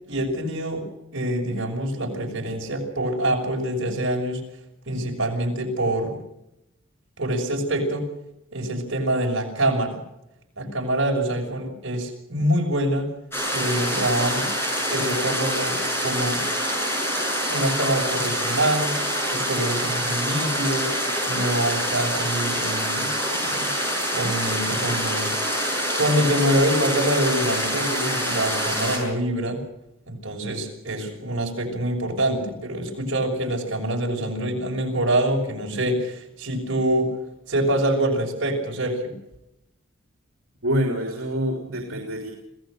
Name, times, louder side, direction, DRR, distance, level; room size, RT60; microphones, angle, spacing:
voice 1, 0.1-0.8 1.1-4.4 4.9-6.2 7.2-8.1 8.5-10.0 10.6-13.1 13.5-14.5 14.9-16.4 17.5-18.9 19.3-20.9 21.3-23.1 23.4-23.7 24.1-25.3 26.0-29.6 30.1-37.1 37.5-39.1, right 1 dB, 60° right, 1 dB, 6.1 m, -25 dB
sound 1, 13.3-29.0, equal, 10° left, 7.5 m, -26 dB
voice 2, 40.6-42.3, equal, 80° right, 2 dB, 3.2 m, -26 dB
26.5 x 16.5 x 6.5 m, 0.86 s
head